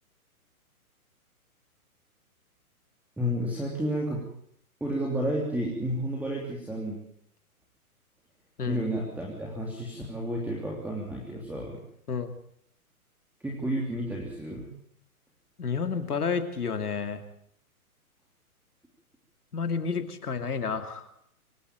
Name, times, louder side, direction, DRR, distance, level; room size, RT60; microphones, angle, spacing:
voice 1, 3.2-4.2 4.8-7.0 8.6-11.8 13.4-14.7, equal, 5° right, -2 dB, 3.3 m, -31 dB
voice 2, 15.6-17.2 19.5-21.1, left 5 dB, 90° left, 8 dB, 2.8 m, -30 dB
24.5 x 12.5 x 9.1 m, 0.70 s
hypercardioid pair, 135°, 44 cm